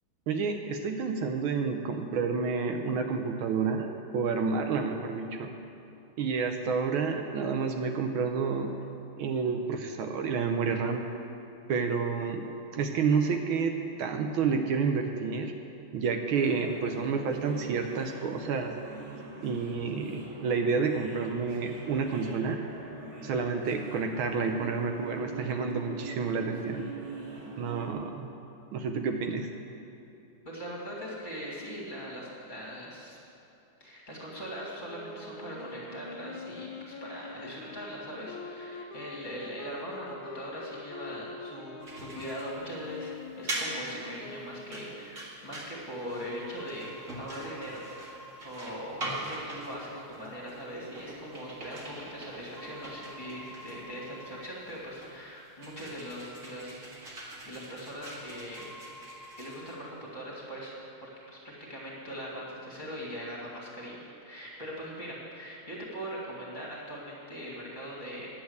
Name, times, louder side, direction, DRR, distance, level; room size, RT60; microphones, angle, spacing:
voice 1, 0.3-5.5 6.2-8.7 9.2-11.0 11.7-15.5 15.9-18.7 19.4-22.6 23.2-26.9 27.6-28.3 28.7-29.5, right 5 dB, 75° right, 5 dB, 1.5 m, -29 dB
sound 1, 16.3-27.9, right 3 dB, 55° right, 2.2 m, -43 dB
voice 2, 30.4-33.2 33.8-43.1 43.4-58.7 59.4-68.3, equal, 20° left, -5 dB, 2.4 m, -41 dB
sound 2, 34.9-45.2, left 3 dB, 70° left, 1.5 m, -45 dB
sound 3, 41.8-60.2, right 1 dB, 40° right, 2.1 m, -42 dB
10.5 x 7.9 x 8.0 m, 2.9 s
omnidirectional pair, 2.3 m